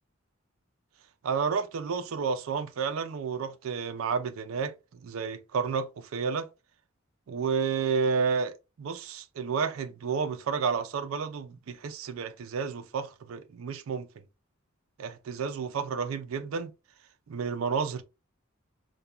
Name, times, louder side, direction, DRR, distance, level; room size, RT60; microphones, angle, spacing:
voice 1, 1.2-6.5 7.3-14.1 15.0-16.7 17.3-18.0, right 5 dB, 75° right, 0.4 m, -31 dB
2.9 x 2.2 x 2.3 m
head